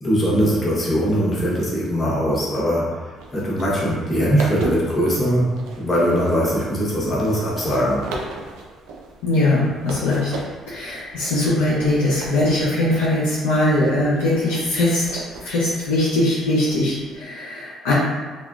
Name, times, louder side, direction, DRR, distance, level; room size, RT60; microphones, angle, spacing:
voice 1, 0.0-5.5 5.8-8.0, equal, 35° left, -6 dB, 1.0 m, -21 dB
sound 1, 3.2-17.2, right 3 dB, 75° right, 0.4 m, -38 dB
voice 2, 9.2-10.3 10.7-17.9, left 1 dB, 85° left, -8 dB, 0.5 m, -21 dB
2.8 x 2.2 x 2.3 m, 1.4 s
hypercardioid pair, 55°, 0 cm